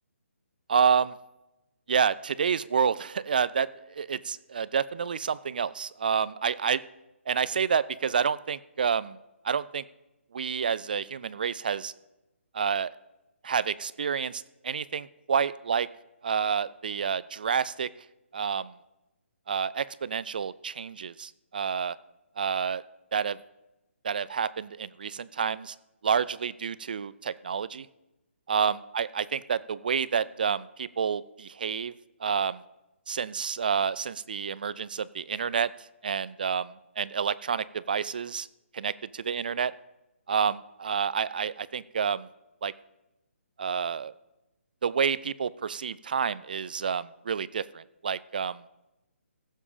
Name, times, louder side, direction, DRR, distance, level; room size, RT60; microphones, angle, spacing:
voice 1, 0.7-1.1 1.9-6.8 7.3-9.2 9.4-9.8 10.3-11.9 12.5-12.9 13.4-15.9 16.2-17.9 18.3-18.7 19.5-22.0 22.4-22.8 23.1-23.4 24.0-25.7 26.0-27.9 28.5-31.9 32.2-32.6 33.1-35.7 36.0-36.6 37.0-38.5 38.7-38.9 39.3-39.7 40.3-42.3 42.6-42.7 43.6-44.1 44.8-48.6, right 6 dB, 40° right, 18 dB, 0.3 m, -29 dB
16.0 x 7.3 x 5.0 m, 0.95 s
hypercardioid pair, 170°, 7 cm